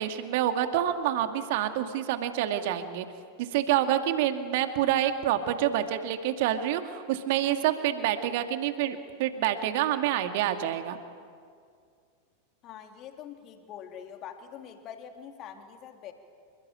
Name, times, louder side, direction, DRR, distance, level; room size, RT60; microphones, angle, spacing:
voice 1, 0.0-3.1 3.4-11.0, right 11 dB, 50° right, 7 dB, 2.3 m, -27 dB
voice 2, 12.6-16.1, left 9 dB, 35° left, 5 dB, 3.1 m, -44 dB
28.0 x 23.5 x 9.0 m, 2.2 s
figure-of-eight pair, 90°, 0 cm